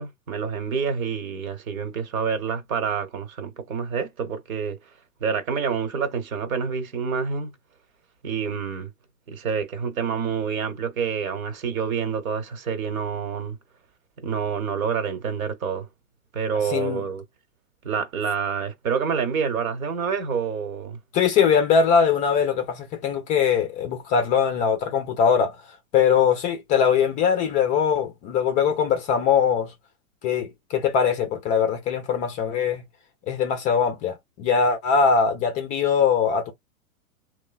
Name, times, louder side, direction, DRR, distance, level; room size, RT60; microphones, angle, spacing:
voice 1, 0.0-4.8 5.2-7.5 8.2-8.9 9.3-13.6 14.2-15.9 16.3-17.2 17.8-21.0, right 6 dB, 80° right, 1.2 m, -27 dB
voice 2, 16.6-17.0 21.1-25.6 25.9-29.7 30.2-32.8 33.3-36.5, left 6 dB, 20° left, 0.4 m, -21 dB
3.1 x 2.2 x 2.3 m
hypercardioid pair, 130°, 41 cm